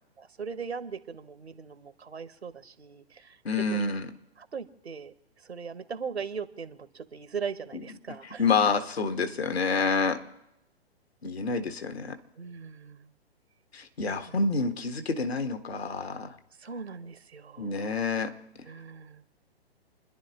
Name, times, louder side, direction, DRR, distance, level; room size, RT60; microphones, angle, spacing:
voice 1, 0.2-3.8 4.4-8.4 12.4-13.1 14.0-14.4 16.6-17.8 18.7-19.2, right 6 dB, 80° right, 10 dB, 1.4 m, -39 dB
voice 2, 3.4-4.1 8.4-10.2 11.2-12.1 13.7-16.3 17.6-18.3, left 4 dB, 75° left, 7 dB, 1.6 m, -28 dB
29.5 x 11.0 x 3.0 m, 0.90 s
figure-of-eight pair, 120°, 32 cm